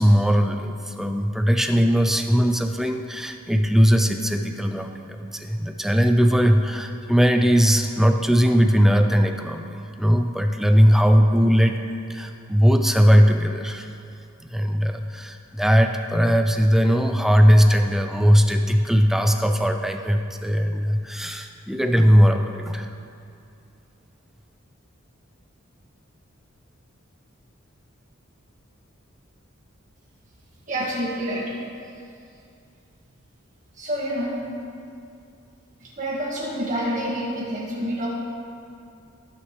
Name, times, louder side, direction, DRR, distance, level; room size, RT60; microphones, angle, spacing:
voice 1, 0.0-13.9 14.5-22.9, equal, ahead, 5 dB, 0.4 m, -19 dB
voice 2, 30.7-31.6 33.7-34.5 35.8-38.1, equal, 35° right, -5 dB, 2.0 m, -28 dB
17.5 x 6.3 x 3.2 m, 2.5 s
head